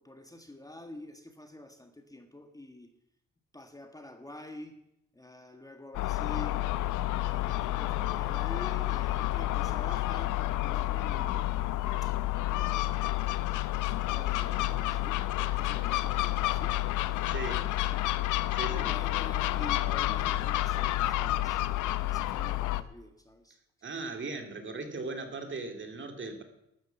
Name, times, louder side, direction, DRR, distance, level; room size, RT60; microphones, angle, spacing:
voice 1, 0.0-2.9 3.5-4.8 5.1-6.7 7.2-11.5 12.0-12.1 12.5-16.8 17.2-23.6, left 1 dB, 10° left, 6 dB, 1.6 m, -48 dB
Gull seagull, 5.9-22.8, left 15 dB, 85° left, 0.7 m, -30 dB
voice 2, 17.3-17.7 18.5-18.9 23.8-26.4, right 3 dB, 40° right, 5 dB, 2.5 m, -38 dB
12.5 x 9.2 x 7.1 m, 0.81 s
cardioid pair, 90°, 30 cm